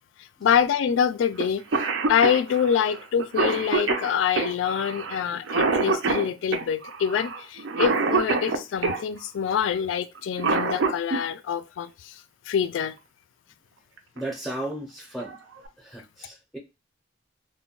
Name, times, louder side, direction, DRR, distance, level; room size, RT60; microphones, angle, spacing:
voice 1, 0.4-1.6 2.1-12.2 12.5-13.0, left 7 dB, 85° left, 0.3 m, -25 dB
Cough, 1.4-1.5 1.7-9.0 10.2-11.2 12.8-12.9 14.0-14.2 14.7-14.8 15.2-15.7, right 4 dB, 80° right, 0.5 m, -26 dB
voice 2, 14.1-15.4 15.8-16.6, right 1 dB, ahead, 0.5 m, -35 dB
2.2 x 2.1 x 3.6 m
head